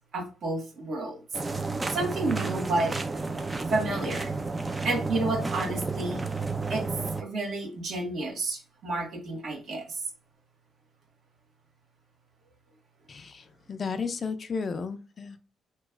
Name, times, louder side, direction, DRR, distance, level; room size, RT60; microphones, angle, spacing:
voice 1, 0.1-1.2 1.9-2.9 3.7-4.3 4.8-6.2 6.7-6.8 7.2-10.0, right 2 dB, 60° right, 1 dB, 1.2 m, -30 dB
sound 1, 1.3-7.2, right 3 dB, 20° right, 0.4 m, -31 dB
voice 2, 13.1-15.4, left 5 dB, 45° left, 9 dB, 0.4 m, -33 dB
3.0 x 2.2 x 3.6 m, 0.34 s
cardioid pair, 90°, 0 cm